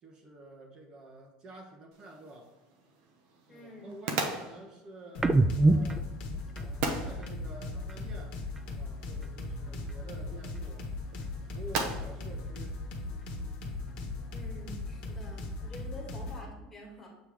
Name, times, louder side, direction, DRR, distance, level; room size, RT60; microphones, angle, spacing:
voice 1, 0.0-2.5 3.5-6.1 6.5-10.9 11.4-12.8 15.9-16.0, right 2 dB, 35° right, 2 dB, 1.2 m, -49 dB
sound 1, 1.9-13.6, right 4 dB, 65° right, 1.0 m, -41 dB
voice 2, 3.5-4.0 14.3-17.1, equal, 10° left, -3 dB, 2.0 m, -48 dB
sound 2, 5.1-16.4, left 3 dB, 45° left, 1.3 m, -39 dB
sound 3, 5.2-8.8 9.1-10.9 11.2-13.0 13.4-15.3, right 2 dB, 10° right, 0.3 m, -33 dB
7.5 x 3.3 x 4.6 m, 1.1 s
cardioid pair, 150°, 2 cm